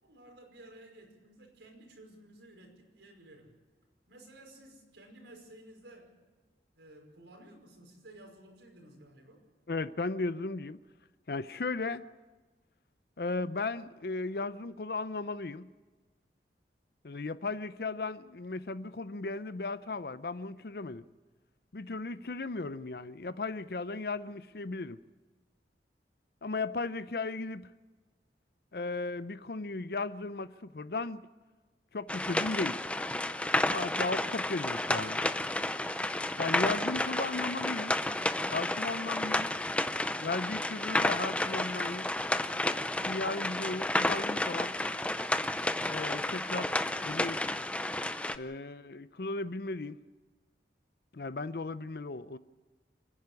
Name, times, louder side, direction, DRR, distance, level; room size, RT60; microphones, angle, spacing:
voice 1, 0.0-3.5 4.1-6.2 6.8-9.4, right 1 dB, 85° right, 5.4 m, -54 dB
voice 2, 9.7-10.8 11.3-12.0 13.2-15.7 17.0-21.0 21.7-25.0 26.4-27.7 28.7-31.2 31.9-32.8 33.7-35.2 36.4-38.0 38.5-39.5 40.2-42.1 43.0-44.7 45.8-46.7 47.0-47.4 48.3-50.0 51.1-52.4, left 3 dB, 60° left, 0.6 m, -36 dB
sound 1, 32.1-48.4, left 1 dB, 5° left, 0.5 m, -31 dB
27.0 x 10.5 x 9.7 m
head